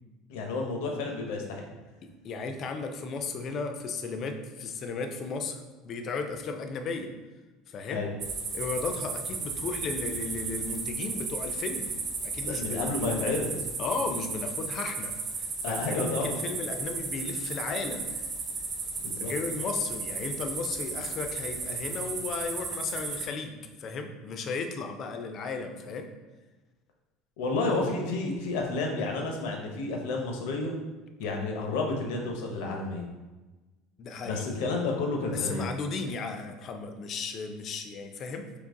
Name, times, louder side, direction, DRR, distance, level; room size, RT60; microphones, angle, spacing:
voice 1, 0.3-1.6 7.9-8.1 12.4-13.5 15.6-16.4 19.0-19.3 27.4-30.7 31.2-33.1 34.2-35.7, left 3 dB, 80° left, 1 dB, 0.7 m, -30 dB
voice 2, 2.0-7.1 7.7-8.1 8.5-12.0 12.2-13.2 13.8-15.1 15.4-15.8 16.2-18.1 19.2-26.1 34.0-34.4 35.3-38.5, left 4 dB, 35° left, 6 dB, 0.3 m, -35 dB
sound 1, 8.2-23.2, right 4 dB, 30° right, 0.7 m, -34 dB
3.9 x 2.8 x 3.6 m, 1.2 s
cardioid pair, 165°, 0 cm